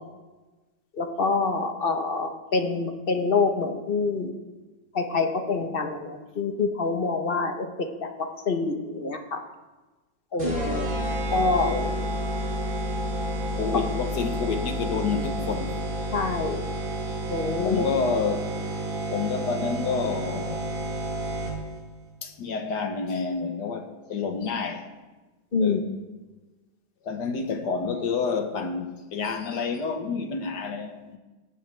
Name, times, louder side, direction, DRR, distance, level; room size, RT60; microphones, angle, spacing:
voice 1, 1.0-4.3 4.9-8.1 8.5-9.4 10.3-10.9 11.3-11.7 16.1-16.6 17.3-17.8 25.5-25.8, left 4 dB, 35° left, 1.2 m, -26 dB
sound 1, 10.4-21.8, right 1 dB, 85° right, 6.2 m, -30 dB
voice 2, 11.6-12.3 13.6-15.8 17.6-18.7 19.1-20.7 22.2-24.9 25.6-25.9 27.0-31.2, left 5 dB, 65° left, 1.7 m, -29 dB
18.0 x 15.5 x 3.4 m
omnidirectional pair, 2.0 m